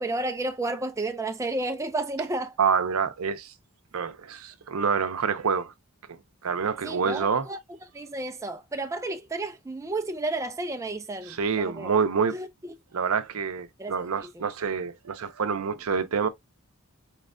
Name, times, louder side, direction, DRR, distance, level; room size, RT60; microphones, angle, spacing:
voice 1, 0.0-2.6 6.8-7.6 7.9-11.9 12.3-12.7 13.8-13.9 14.4-14.5, right 2 dB, 15° right, 0.4 m, -32 dB
voice 2, 2.6-3.5 3.9-5.7 6.1-7.5 11.3-12.4 12.9-16.3, right 6 dB, 75° right, 0.6 m, -27 dB
4.3 x 3.2 x 2.5 m
head